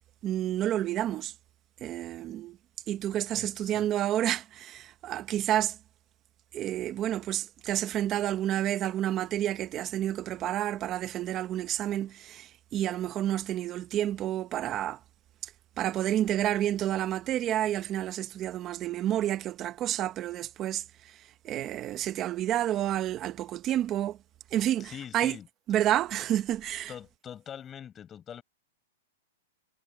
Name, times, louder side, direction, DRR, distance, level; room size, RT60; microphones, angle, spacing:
voice 1, 0.2-1.3 1.8-2.6 2.9-5.8 6.5-15.0 15.4-15.5 15.8-24.2 24.5-25.4 25.7-26.9, right 12 dB, 25° right, 1.1 m, -30 dB
voice 2, 3.3-3.9 24.8-25.5 26.9-28.4, left 9 dB, 20° left, 8.0 m, -43 dB
hypercardioid pair, 155°, 0 cm